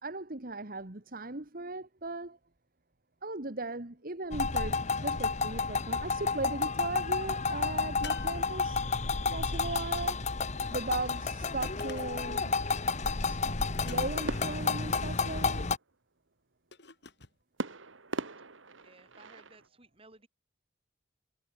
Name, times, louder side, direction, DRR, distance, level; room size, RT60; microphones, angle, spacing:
voice 1, 0.0-2.4 3.2-8.8 9.3-10.2 10.7-12.5 13.3-15.6, right 2 dB, 45° right, 1.9 m, -38 dB
sound 1, 4.3-15.8, left 4 dB, 35° left, 1.0 m, -31 dB
sound 2, 8.0-9.1 11.6-12.4 13.8-14.4 16.7-17.4, left 6 dB, 60° left, 4.0 m, -48 dB
sound 3, 14.3-15.8 17.6-19.7, right 2 dB, 85° right, 2.0 m, -41 dB
voice 2, 18.8-20.3, right 2 dB, 30° right, 7.3 m, -58 dB
head